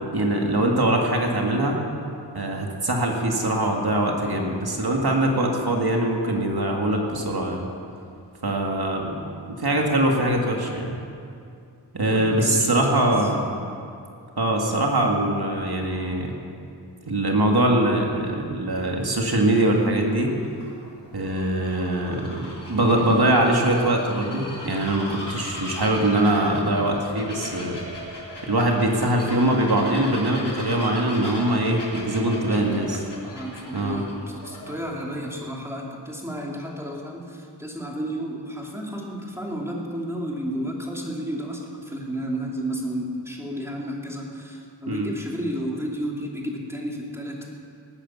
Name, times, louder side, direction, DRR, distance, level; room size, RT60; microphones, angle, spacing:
voice 1, 0.0-1.8 2.3-7.7 8.4-9.2 9.5-11.0 11.9-13.5 14.4-16.3 17.1-20.3 21.1-27.8 28.4-32.9 33.7-34.0 44.9-45.1, right 1 dB, 60° right, 0 dB, 2.2 m, -22 dB
voice 2, 12.1-13.3 32.5-32.9 33.2-47.6, equal, 5° right, -2 dB, 2.9 m, -32 dB
Bird vocalization bird call bird song, 20.1-35.0, left 1 dB, 70° left, 3.5 m, -38 dB
18.5 x 10.0 x 7.2 m, 2.5 s
wide cardioid pair, 60°, 42 cm